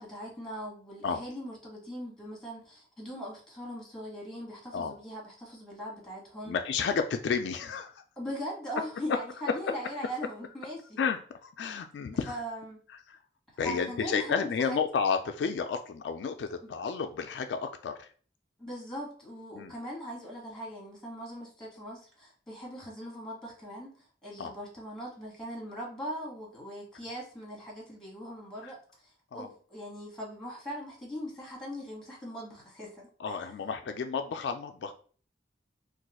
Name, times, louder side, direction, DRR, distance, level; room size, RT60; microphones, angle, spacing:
voice 1, 0.0-6.5 8.2-11.0 12.3-12.8 13.6-14.8 16.6-16.7 18.6-33.4, equal, 5° left, -4 dB, 1.1 m, -40 dB
voice 2, 6.5-8.0 9.1-9.2 9.5-9.7 11.0-12.3 13.1-13.2 13.6-18.1 19.5-19.7 24.4-24.5 28.6-28.7 29.3-29.5 33.2-34.9, left 6 dB, 75° left, 6 dB, 0.3 m, -31 dB
2.4 x 2.3 x 4.0 m, 0.43 s
head